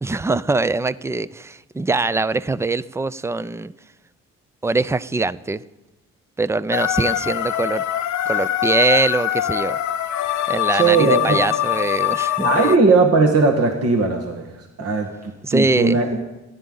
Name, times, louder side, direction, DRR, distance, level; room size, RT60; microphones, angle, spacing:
voice 1, 0.0-3.7 4.6-5.6 6.4-7.8 8.3-9.8 10.5-12.8 15.4-16.0, right 3 dB, 10° right, 0.4 m, -22 dB
sound 1, 6.7-12.8, left 12 dB, 70° left, 0.8 m, -23 dB
voice 2, 10.7-11.5 12.4-14.5 14.8-16.2, right 3 dB, 50° right, 1.6 m, -18 dB
27.5 x 11.0 x 3.9 m
cardioid pair, 90°, 30 cm